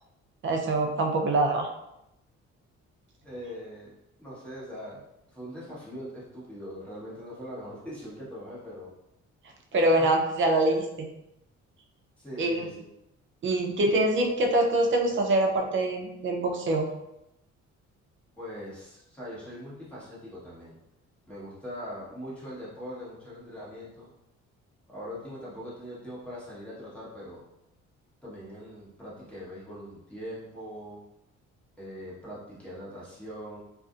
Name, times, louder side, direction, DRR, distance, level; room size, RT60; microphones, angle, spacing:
voice 1, 0.4-1.7 9.7-11.1 12.4-12.7 13.4-16.9, right 1 dB, 40° right, 2 dB, 0.5 m, -24 dB
voice 2, 3.2-5.0 5.3-8.9 9.9-10.2 12.2-12.9 18.4-20.8 21.3-24.1 24.9-27.4 28.2-31.0 31.8-33.6, equal, 5° left, -8 dB, 1.2 m, -41 dB
2.5 x 2.4 x 2.4 m, 0.86 s
cardioid pair, 90°, 30 cm